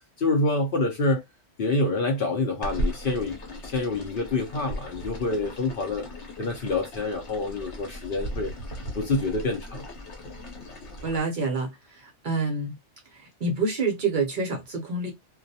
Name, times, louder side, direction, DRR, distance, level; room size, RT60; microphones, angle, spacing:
voice 1, 0.2-1.2 1.6-6.1 6.4-8.5 8.9-9.9 10.2-10.3, left 2 dB, 55° left, 0.7 m, -27 dB
sound 1, 2.6-11.2, equal, 70° left, 1.2 m, -37 dB
voice 2, 11.0-12.7 13.1-15.1, right 3 dB, 50° right, 0.7 m, -28 dB
2.3 x 2.1 x 2.6 m
omnidirectional pair, 1.2 m